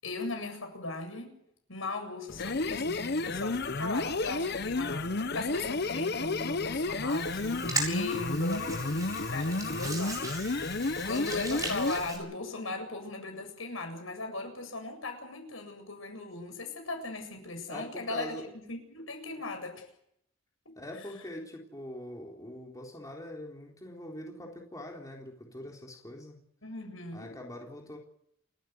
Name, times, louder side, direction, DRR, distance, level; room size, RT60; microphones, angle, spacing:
voice 1, 0.0-1.3 1.7-19.8 20.7-20.8 26.6-27.4, left 2 dB, 75° left, 5 dB, 7.8 m, -38 dB
sound 1, 2.3-12.1, left 3 dB, 50° left, 1.0 m, -32 dB
Hands, 7.1-12.2, right 3 dB, 15° right, 7.4 m, -38 dB
voice 2, 17.7-18.5 20.8-26.4 27.1-28.0, left 1 dB, 15° left, 0 dB, 3.8 m, -43 dB
29.5 x 13.5 x 9.4 m, 0.73 s
head